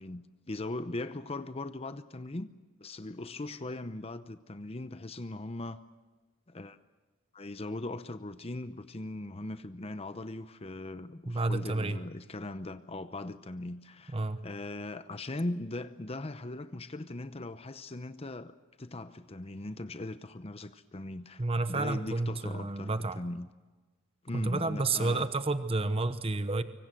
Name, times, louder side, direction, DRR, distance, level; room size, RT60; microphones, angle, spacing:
voice 1, 0.0-2.5 2.8-5.8 6.5-6.8 7.3-18.5 18.8-21.4 21.7-23.5 24.2-25.3, left 2 dB, 30° left, 0.8 m, -39 dB
voice 2, 11.3-12.0 14.1-14.5 21.4-23.2 24.3-26.6, right 2 dB, 30° right, 1.0 m, -30 dB
25.0 x 24.0 x 7.6 m
head